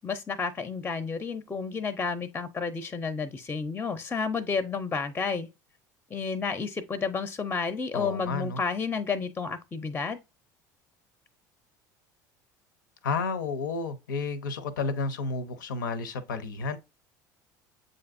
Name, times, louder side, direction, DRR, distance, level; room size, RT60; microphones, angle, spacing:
voice 1, 0.0-5.5 6.1-10.2, left 5 dB, 20° left, 0.4 m, -31 dB
voice 2, 7.9-8.6 13.0-16.8, left 4 dB, 85° left, 0.5 m, -31 dB
7.4 x 2.6 x 2.4 m
hypercardioid pair, 75°, 10 cm